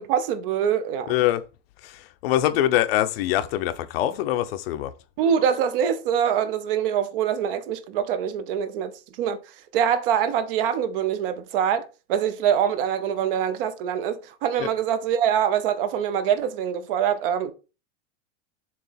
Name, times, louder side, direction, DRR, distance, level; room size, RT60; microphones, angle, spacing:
voice 1, 0.0-1.1 5.2-8.9 9.2-9.4 9.7-17.5, right 8 dB, 50° right, 0.8 m, -24 dB
voice 2, 1.1-1.4 1.8-4.9 14.6-14.7, left 13 dB, 55° left, 0.7 m, -24 dB
7.2 x 3.1 x 5.6 m
supercardioid pair, 170°, 35 cm